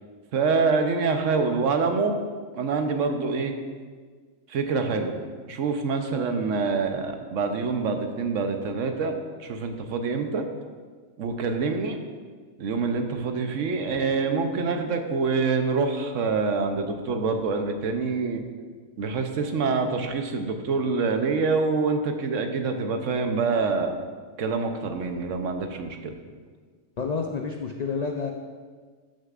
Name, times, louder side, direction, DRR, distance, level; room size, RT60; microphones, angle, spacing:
voice 1, 0.3-2.2 2.5-3.6 4.5-5.1 5.4-9.1 9.4-10.5 11.2-12.0 12.6-18.4 19.0-24.0 24.4-26.2, right 4 dB, 70° right, 5 dB, 1.1 m, -26 dB
voice 2, 27.0-28.3, left 5 dB, 75° left, 2 dB, 0.3 m, -29 dB
13.0 x 6.5 x 2.5 m, 1.5 s
omnidirectional pair, 1.4 m